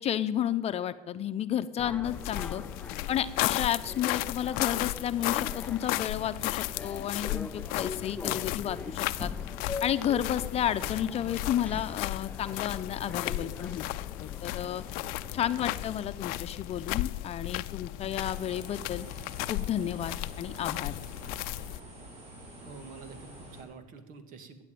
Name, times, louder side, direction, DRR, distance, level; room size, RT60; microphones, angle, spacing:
voice 1, 0.0-2.6 3.1-9.3 9.8-13.8 14.2-14.8 15.3-19.1 19.5-21.0, left 10 dB, 40° left, 11 dB, 0.8 m, -32 dB
sound 1, 1.8-16.1, left 3 dB, 10° left, 0.5 m, -43 dB
sound 2, 2.0-21.8, left 18 dB, 65° left, 0.6 m, -35 dB
voice 2, 2.4-2.8 8.2-8.5 13.3-13.6 15.0-15.4 22.6-24.6, right 5 dB, 55° right, 10 dB, 2.2 m, -49 dB
sound 3, 18.2-23.6, right 1 dB, 40° right, 6.6 m, -47 dB
14.5 x 9.9 x 8.6 m, 1.2 s
supercardioid pair, 115°, 16 cm